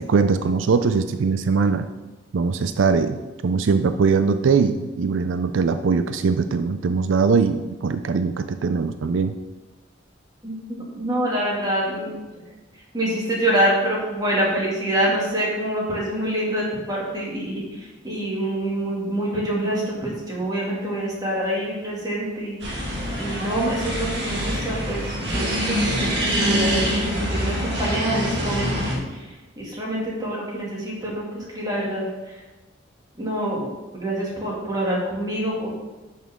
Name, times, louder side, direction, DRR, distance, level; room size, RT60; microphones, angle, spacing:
voice 1, 0.0-1.9 2.3-3.2 3.4-9.3, right 5 dB, 85° right, 10 dB, 0.4 m, -21 dB
voice 2, 10.4-12.1 12.9-22.6 23.2-32.4 33.2-35.7, right 1 dB, 20° right, -5 dB, 2.3 m, -26 dB
sound 1, 22.6-29.0, equal, 65° right, 1.9 m, -25 dB
11.0 x 5.7 x 3.7 m, 1.1 s
head